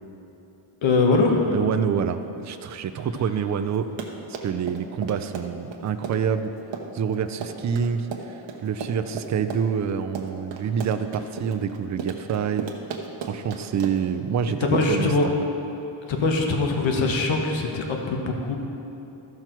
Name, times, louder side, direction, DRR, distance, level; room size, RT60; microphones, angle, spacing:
voice 1, 0.8-1.6 14.7-15.3 16.1-18.6, left 3 dB, 70° left, 2 dB, 1.2 m, -22 dB
voice 2, 1.5-3.9 4.4-6.5 6.9-12.7 13.3-15.1, right 7 dB, 40° right, 9 dB, 0.4 m, -27 dB
Run, 3.7-14.2, right 5 dB, 70° right, 1.0 m, -35 dB
14.0 x 5.9 x 4.5 m, 3.0 s
wide cardioid pair, 155°, 48 cm